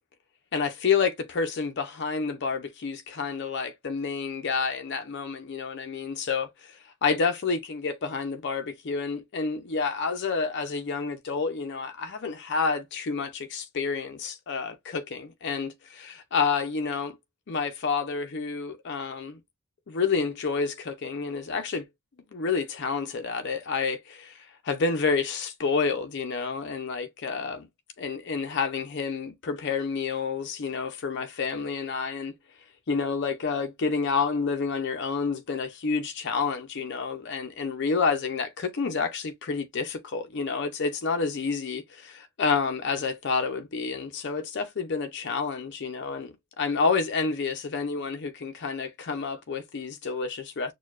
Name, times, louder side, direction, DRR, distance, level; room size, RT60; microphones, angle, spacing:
voice 1, 0.5-17.2 17.5-19.4 19.9-21.8 22.3-27.7 28.0-32.3 32.9-50.7, left 5 dB, 50° left, 0.5 m, -29 dB
6.3 x 2.2 x 2.4 m
head